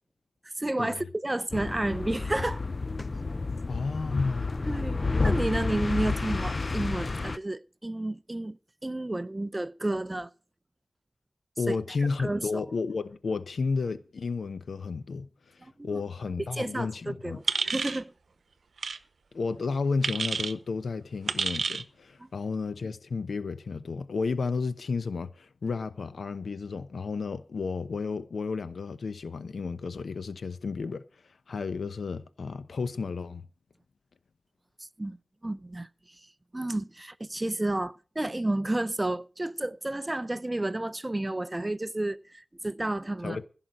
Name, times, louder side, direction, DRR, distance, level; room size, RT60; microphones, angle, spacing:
voice 1, 0.6-2.6 4.7-10.3 11.7-11.8 12.2-12.6 15.6-16.0 16.5-18.1 22.2-22.3 35.0-35.2 35.4-35.9 36.5-43.4, right 1 dB, 20° right, 0.6 m, -31 dB
sound 1, 1.5-7.4, left 3 dB, 45° left, 0.6 m, -30 dB
voice 2, 3.7-4.5 11.6-15.3 15.8-17.4 19.3-31.0 31.5-33.4 43.2-43.4, left 4 dB, 85° left, 0.9 m, -32 dB
sound 2, 17.5-18.0 18.8-19.0 20.0-20.5 21.3-21.8, right 4 dB, 85° right, 0.8 m, -29 dB
15.5 x 5.8 x 7.8 m
wide cardioid pair, 75°, 0 cm